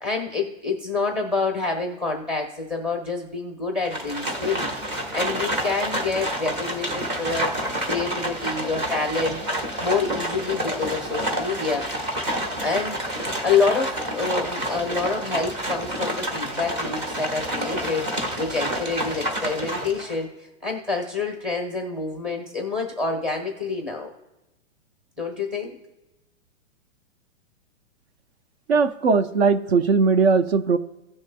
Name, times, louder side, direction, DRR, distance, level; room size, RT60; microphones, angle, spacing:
voice 1, 0.0-9.4 9.8-11.9 12.6-24.1 25.2-25.8, left 4 dB, ahead, 1 dB, 0.7 m, -27 dB
Livestock farm animals working animals, 3.8-20.2, right 1 dB, 20° right, 1.2 m, -29 dB
voice 2, 28.7-30.8, right 4 dB, 55° right, 11 dB, 0.7 m, -19 dB
17.0 x 6.3 x 2.3 m, 1.0 s
hypercardioid pair, 165°, 39 cm